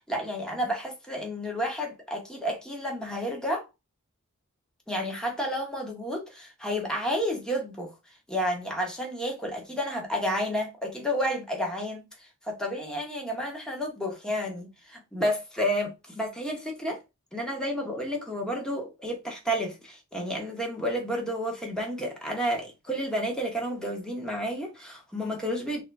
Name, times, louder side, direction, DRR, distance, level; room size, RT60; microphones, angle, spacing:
voice 1, 0.1-3.7 4.9-7.9 8.3-12.0 12.4-17.0 17.3-25.8, equal, 5° left, 1.1 m, -31 dB
3.7 x 2.7 x 3.4 m
head